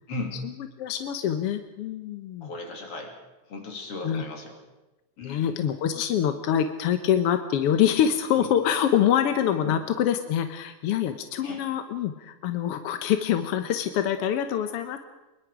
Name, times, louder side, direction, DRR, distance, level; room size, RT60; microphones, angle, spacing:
voice 1, 0.8-2.5 4.0-4.2 5.2-15.0, left 9 dB, 65° left, 9 dB, 1.5 m, -25 dB
voice 2, 2.4-3.1 3.5-4.6 5.2-5.5 8.4-8.5 9.6-9.8 11.4-11.6, left 3 dB, 45° left, 3 dB, 3.9 m, -36 dB
23.5 x 22.0 x 5.0 m, 1.1 s
omnidirectional pair, 3.6 m